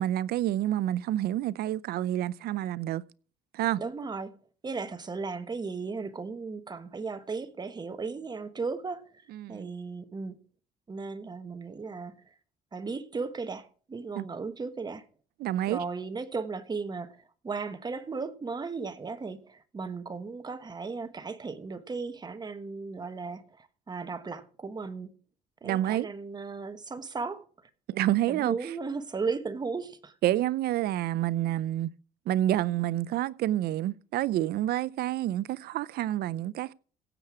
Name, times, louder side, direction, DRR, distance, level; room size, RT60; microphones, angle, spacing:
voice 1, 0.0-3.0 3.5-3.8 9.3-9.7 14.2-14.3 15.4-15.8 25.6-26.1 27.9-28.7 30.2-31.9 32.3-36.7, right 13 dB, 70° right, 0.5 m, -28 dB
voice 2, 3.8-4.4 4.6-9.1 9.5-10.4 10.9-12.2 12.7-15.1 15.7-25.2 25.6-27.4 28.3-30.1, right 4 dB, 25° right, 1.3 m, -36 dB
16.5 x 7.9 x 4.8 m
cardioid pair, 110°, 17 cm